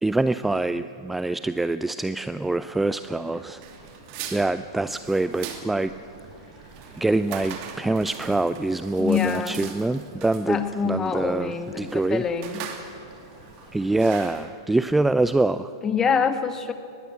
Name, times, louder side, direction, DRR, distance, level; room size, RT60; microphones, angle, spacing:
voice 1, 0.0-3.6 4.3-5.9 7.0-10.6 10.8-12.2 13.7-15.7, right 2 dB, 5° right, 13 dB, 0.4 m, -25 dB
sound 1, 2.6-14.4, right 3 dB, 30° right, 7.1 m, -49 dB
sound 2, 3.6-14.4, right 8 dB, 50° right, 2.8 m, -40 dB
voice 2, 9.0-9.6 10.5-12.6 15.8-16.7, left 6 dB, 20° left, 9 dB, 1.6 m, -25 dB
21.0 x 15.5 x 8.3 m, 2.5 s
hypercardioid pair, 110°, 2 cm